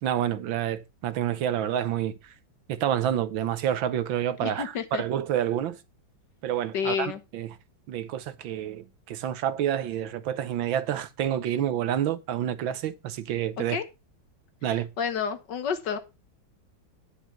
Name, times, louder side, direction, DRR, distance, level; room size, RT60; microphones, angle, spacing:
voice 1, 0.0-2.3 2.7-5.8 6.4-7.5 7.9-13.8 14.6-14.9, right 10 dB, 75° right, 1.6 m, -28 dB
voice 2, 4.4-5.0 6.7-7.2 13.6-13.8 15.0-16.0, left 7 dB, 60° left, 1.7 m, -29 dB
10.0 x 6.1 x 5.8 m
omnidirectional pair, 2.2 m